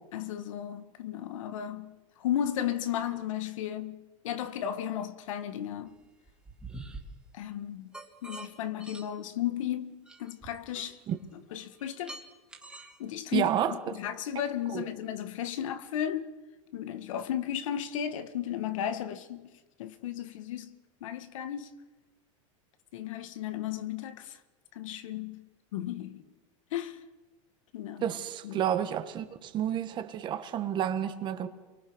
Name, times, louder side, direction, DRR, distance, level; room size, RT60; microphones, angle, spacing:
voice 1, 0.1-6.0 7.3-7.9 8.2-11.0 11.5-12.2 13.0-16.3 16.7-19.5 19.8-20.7 21.0-21.7 22.9-24.4 24.7-25.5 25.7-26.2 26.7-27.0 27.7-28.1 28.4-28.6, left 10 dB, 80° left, 2.0 m, -34 dB
sound 1, 6.0-7.0 7.9-8.5 8.8-9.1 10.1-11.1 11.6-13.0, right 2 dB, 5° right, 2.9 m, -45 dB
voice 2, 13.3-13.8 14.3-14.8 28.0-31.5, right 10 dB, 30° right, 1.7 m, -30 dB
29.0 x 23.5 x 6.4 m
supercardioid pair, 155°, 16 cm